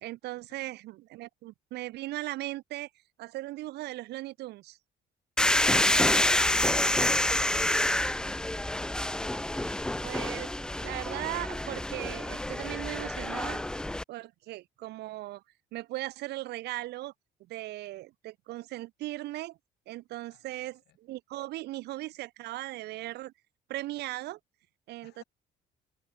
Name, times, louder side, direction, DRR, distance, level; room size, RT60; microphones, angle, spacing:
voice 1, 0.0-2.9 3.2-4.8 9.5-13.6 14.1-15.4 15.7-17.1 17.4-19.6 19.9-23.3 23.7-24.4 24.9-25.2, right 17 dB, 80° right, 1.3 m, -38 dB
sound 1, 5.4-14.0, left 1 dB, 5° left, 0.4 m, -28 dB
voice 2, 20.3-21.0 21.8-21.9 25.0-25.2, left 15 dB, 75° left, 5.3 m, -58 dB
cardioid pair, 110°, 17 cm